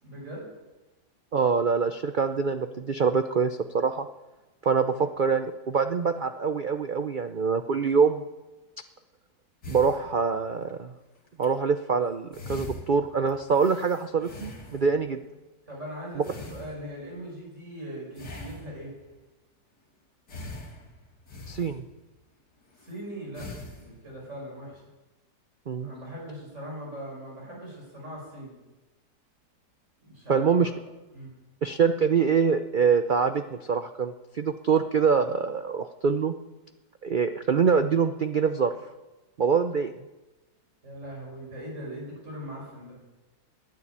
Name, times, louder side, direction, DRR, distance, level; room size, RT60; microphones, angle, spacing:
voice 1, 0.0-0.5 4.9-5.1 15.7-18.9 22.8-23.5 23.7-24.8 25.8-28.5 30.0-30.7 31.1-31.3 40.8-43.0, equal, 45° right, -3 dB, 7.1 m, -40 dB
voice 2, 1.3-4.1 4.6-8.2 9.7-10.9 11.4-15.2 21.5-21.8 25.7-25.9 30.3-30.7 31.6-36.3 37.0-38.7 39.4-39.9, right 5 dB, 70° right, 8 dB, 0.4 m, -24 dB
sound 1, 9.6-10.7 11.3-11.5 12.0-12.1 12.3-15.1 16.2-17.1 18.1-19.1 20.3-22.2 22.7-22.9 23.3-24.1, left 2 dB, 80° left, 3.0 m, -43 dB
11.5 x 9.9 x 9.7 m, 1.1 s
omnidirectional pair, 1.8 m